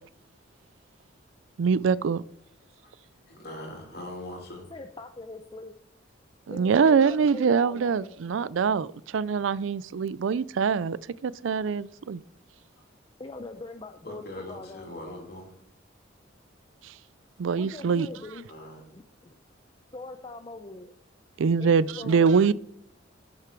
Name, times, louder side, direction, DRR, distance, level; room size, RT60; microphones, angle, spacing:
voice 1, 1.6-2.2 6.5-12.2 17.4-18.1 21.4-22.5, right 6 dB, 80° right, 0.4 m, -24 dB
voice 2, 3.3-4.7 14.0-15.6 18.5-18.8, left 1 dB, 55° left, 3.1 m, -41 dB
voice 3, 4.7-5.8 6.5-8.1 13.2-14.9 17.5-18.5 18.9-19.3 19.9-20.9 21.6-22.5, left 3 dB, 25° left, 0.5 m, -42 dB
11.0 x 6.8 x 4.6 m
head